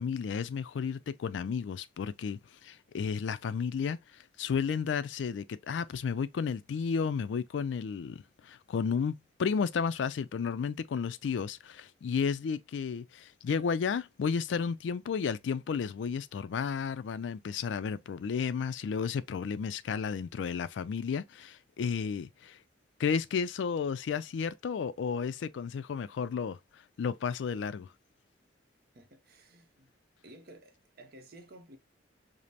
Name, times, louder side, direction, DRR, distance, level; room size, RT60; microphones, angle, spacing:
voice 1, 0.0-22.6 23.0-26.6 27.0-27.9, left 6 dB, 80° left, 0.3 m, -32 dB
voice 2, 28.9-29.9 30.2-31.8, right 1 dB, 55° right, 0.9 m, -53 dB
5.0 x 2.0 x 2.8 m
head